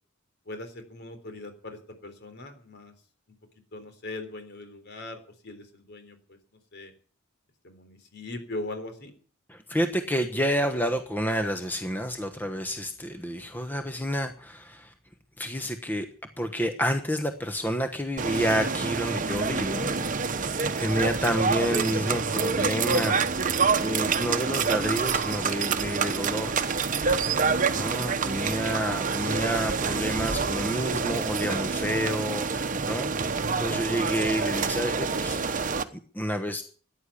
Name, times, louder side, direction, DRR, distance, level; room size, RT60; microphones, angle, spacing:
voice 1, 0.5-2.9 3.7-6.4 6.7-6.9 7.6-9.1, left 2 dB, 55° left, 7 dB, 3.6 m, -40 dB
voice 2, 9.5-14.9 15.4-16.1 16.4-19.9 20.4-26.7 27.7-35.6 36.1-36.6, equal, 10° left, 7 dB, 1.1 m, -29 dB
sound 1, 18.2-35.8, right 5 dB, 40° right, 1.1 m, -27 dB
15.0 x 10.0 x 8.4 m, 0.42 s
head